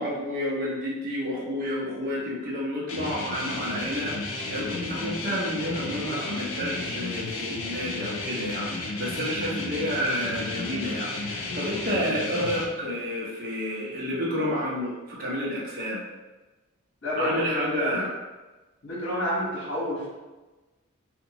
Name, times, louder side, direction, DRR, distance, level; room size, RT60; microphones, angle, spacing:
voice 1, 0.0-16.0 17.2-18.1, equal, 40° right, -5 dB, 0.7 m, -30 dB
sound 1, 2.9-12.6, left 3 dB, 75° left, 0.4 m, -33 dB
voice 2, 17.0-18.0 18.8-20.1, left 1 dB, 55° left, -6 dB, 1.1 m, -29 dB
2.7 x 2.2 x 2.7 m, 1.2 s
head